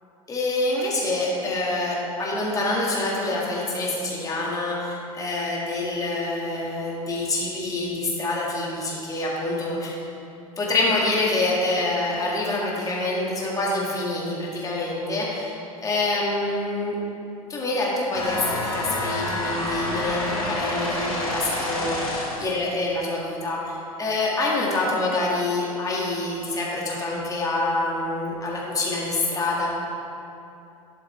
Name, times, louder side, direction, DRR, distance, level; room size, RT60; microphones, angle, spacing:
voice 1, 0.3-10.0 10.6-17.0 17.5-23.6 24.0-29.7, left 2 dB, 20° left, -4 dB, 2.0 m, -26 dB
sound 1, 18.1-22.6, left 1 dB, 80° left, 2.2 m, -28 dB
11.0 x 8.4 x 3.4 m, 2.8 s
figure-of-eight pair, 85°, 18 cm